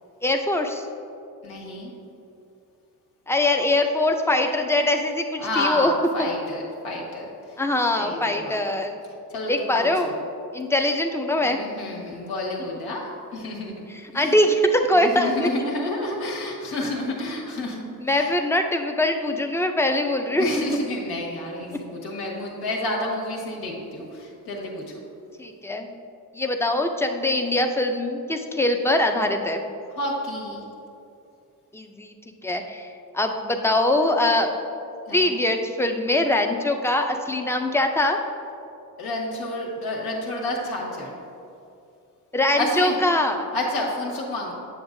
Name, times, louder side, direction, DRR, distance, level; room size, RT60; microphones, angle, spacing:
voice 1, 0.2-0.9 3.3-5.9 6.2-6.3 7.6-8.9 9.5-10.1 10.5-11.6 13.9-15.5 18.0-20.5 25.4-25.9 26.3-29.6 31.7-32.1 32.4-32.9 33.1-34.5 35.1-38.2 42.3-43.5, left 1 dB, 5° left, 4 dB, 0.4 m, -22 dB
voice 2, 1.4-1.9 5.4-7.3 7.9-8.6 9.3-10.1 11.4-13.8 14.1-14.3 15.0-17.8 18.1-18.3 20.4-24.8 30.0-30.6 35.1-35.4 39.0-41.1 42.6-43.0 43.5-44.5, left 1 dB, 90° left, -2 dB, 1.6 m, -30 dB
8.6 x 6.9 x 2.6 m, 2.6 s
cardioid pair, 110°, 36 cm